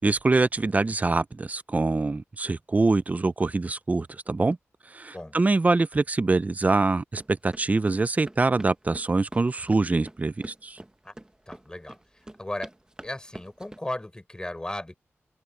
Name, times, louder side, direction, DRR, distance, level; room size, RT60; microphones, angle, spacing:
voice 1, 0.0-4.6 4.9-10.8, right 3 dB, 30° right, 0.6 m, -24 dB
sound 1, 7.1-13.8, right 1 dB, 15° right, 1.1 m, -45 dB
voice 2, 11.5-12.0 12.4-12.7 13.0-15.0, left 1 dB, 15° left, 4.6 m, -35 dB
wide cardioid pair, 85°, 5 cm